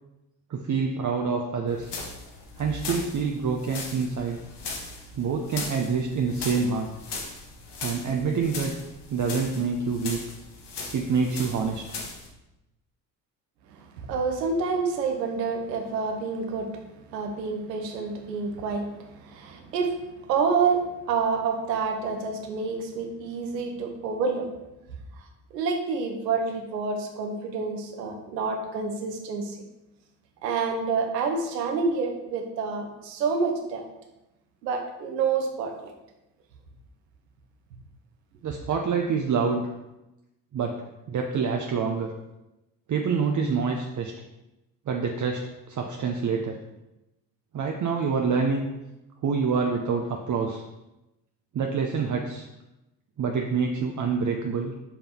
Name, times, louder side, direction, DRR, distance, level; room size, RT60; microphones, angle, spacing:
voice 1, 0.5-1.9 2.6-4.4 5.2-6.9 7.8-8.7 9.1-10.2 10.9-11.8 38.4-39.7 40.5-40.8 41.1-42.1 42.9-44.1 44.9-45.4 45.7-46.6 47.5-48.7 49.2-50.6 51.5-52.4 53.2-54.7, right 5 dB, 40° right, 1 dB, 0.8 m, -26 dB
sound 1, 1.7-12.3, left 3 dB, 55° left, 1.6 m, -38 dB
voice 2, 13.7-24.5 25.2-25.3 25.5-29.6 30.4-33.8 34.6-35.9, right 4 dB, 90° right, 3 dB, 1.0 m, -28 dB
5.8 x 5.1 x 4.4 m, 0.96 s
hypercardioid pair, 55°, 49 cm